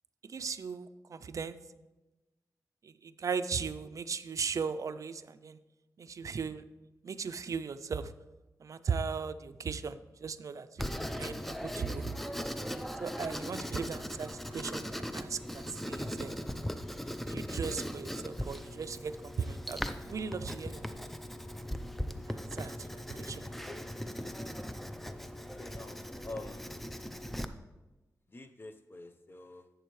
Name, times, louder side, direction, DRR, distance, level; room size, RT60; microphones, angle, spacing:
voice 1, 0.2-1.6 2.8-5.6 6.0-6.6 7.0-8.1 8.6-12.1 13.0-16.4 17.3-21.1 22.3-23.5, right 5 dB, 60° right, 12 dB, 0.4 m, -38 dB
Writing, 10.8-27.4, equal, 5° left, 0.5 m, -39 dB
voice 2, 23.7-24.0 25.5-26.8 28.3-29.7, left 2 dB, 35° left, 9 dB, 0.8 m, -47 dB
11.0 x 7.8 x 3.2 m, 1.1 s
wide cardioid pair, 100°, 6 cm